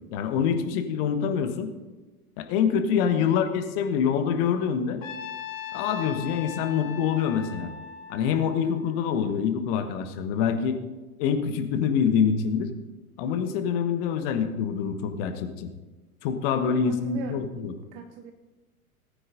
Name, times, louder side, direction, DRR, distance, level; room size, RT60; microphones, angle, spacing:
voice 1, 0.1-1.7 2.4-5.0 5.7-7.7 8.1-10.8 11.2-12.7 13.2-15.7 16.2-17.7, left 7 dB, 40° left, 7 dB, 1.2 m, -25 dB
Trumpet, 5.0-9.2, left 9 dB, 60° left, 1.6 m, -39 dB
voice 2, 16.6-18.3, right 5 dB, 20° right, 7 dB, 0.4 m, -42 dB
19.0 x 9.2 x 2.6 m, 1.2 s
figure-of-eight pair, 95°, 45 cm